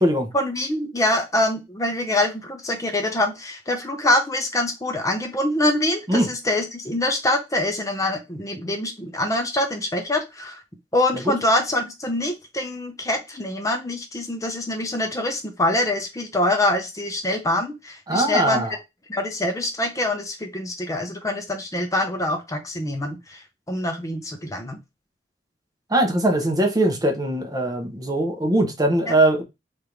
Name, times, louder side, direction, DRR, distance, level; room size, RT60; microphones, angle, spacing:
voice 1, 0.3-10.6 10.9-18.6 19.1-24.8 29.1-29.2, left 1 dB, 20° left, 0.6 m, -25 dB
voice 2, 18.1-18.7 25.9-29.4, right 1 dB, 20° right, 0.7 m, -21 dB
3.3 x 2.5 x 4.4 m
head